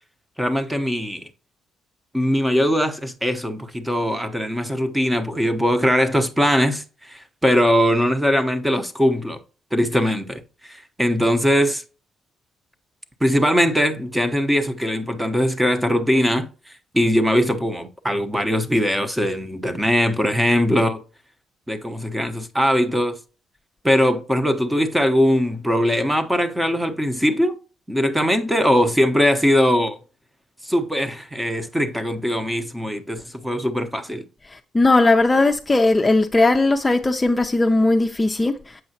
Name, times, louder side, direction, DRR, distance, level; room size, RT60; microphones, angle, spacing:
voice 1, 0.4-1.3 2.1-9.4 9.7-11.8 13.2-16.5 16.9-21.0 21.7-23.2 23.8-27.6 27.9-30.0 30.6-34.2, equal, 10° right, 0.9 m, -21 dB
voice 2, 34.7-38.8, left 2 dB, 20° left, 0.5 m, -18 dB
7.8 x 5.4 x 2.8 m
cardioid pair, 90°, 0 cm